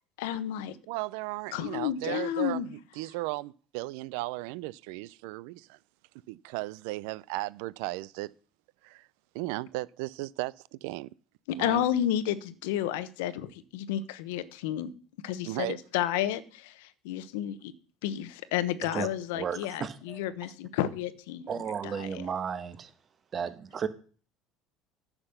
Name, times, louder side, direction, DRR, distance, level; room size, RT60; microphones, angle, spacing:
voice 1, 0.2-0.8 1.5-2.7 11.5-14.9 15.2-17.7 18.0-22.3, left 11 dB, 85° left, 0.8 m, -31 dB
voice 2, 0.9-5.8 6.3-8.3 8.8-9.1 9.3-11.1 11.6-11.8 15.4-15.8, right 21 dB, 80° right, 0.4 m, -36 dB
voice 3, 19.3-20.2 21.5-22.9 23.3-23.9, right 7 dB, 40° right, 1.2 m, -34 dB
9.8 x 6.0 x 6.6 m
supercardioid pair, 100°, 0 cm